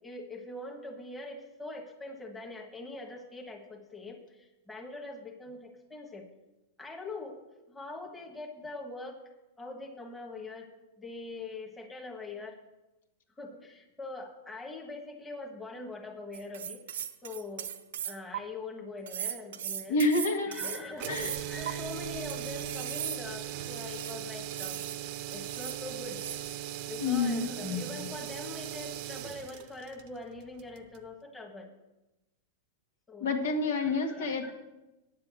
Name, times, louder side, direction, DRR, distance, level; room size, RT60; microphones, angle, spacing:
voice 1, 0.0-6.3 6.8-7.4 7.7-9.2 9.6-10.7 11.0-12.6 13.4-16.8 17.2-17.7 18.0-20.0 20.5-24.8 25.3-26.2 26.9-31.7 33.1-33.3 33.8-34.5, left 3 dB, 10° left, 1 dB, 1.4 m, -42 dB
sound 1, 16.3-18.4 19.1-21.7 22.3-24.2 24.5-25.0 25.3-25.8 26.1-26.6, right 9 dB, 85° right, 0.8 m, -38 dB
voice 2, 19.9-20.8 21.1-21.3 27.0-27.5 33.2-34.5, left 3 dB, 85° left, 3 dB, 1.9 m, -28 dB
sound 2, 20.9-31.1, right 11 dB, 45° right, 0.7 m, -39 dB
9.7 x 7.6 x 7.5 m, 1.0 s
supercardioid pair, 155°, 0 cm